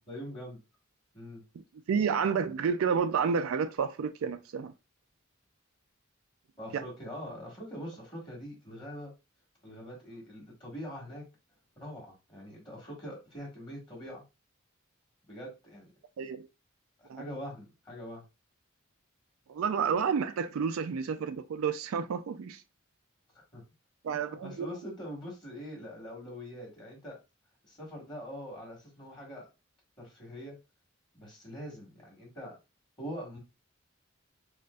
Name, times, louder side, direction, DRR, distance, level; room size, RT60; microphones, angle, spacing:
voice 1, 0.1-0.6 1.1-1.4 6.6-9.1 9.6-11.2 11.8-14.2 15.3-15.9 17.0-18.2 23.5-23.6 24.3-27.2 27.7-29.4 30.0-30.6 31.1-32.5 33.0-33.4, equal, 25° left, 1.5 m, -43 dB
voice 2, 1.9-4.7 6.7-6.8 16.2-16.5 17.1-17.2 19.5-22.6 24.0-24.7, right 6 dB, 85° right, 0.4 m, -30 dB
4.3 x 2.5 x 2.3 m
head